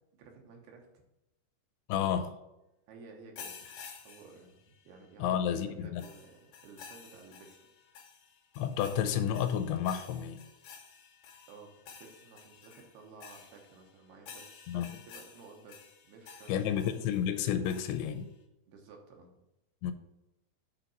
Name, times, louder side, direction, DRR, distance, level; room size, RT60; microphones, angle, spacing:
voice 1, 0.1-0.9 2.9-3.7 4.0-7.6 11.5-16.8 18.7-19.3, right 4 dB, 80° right, 3.1 m, -54 dB
voice 2, 1.9-2.4 5.2-6.0 8.6-10.4 14.7-14.9 16.5-18.3 19.8-19.9, left 9 dB, 90° left, 2.6 m, -31 dB
sound 1, 3.4-5.0 6.0-18.3, left 6 dB, 70° left, 2.4 m, -52 dB
8.1 x 4.0 x 5.8 m
omnidirectional pair, 4.6 m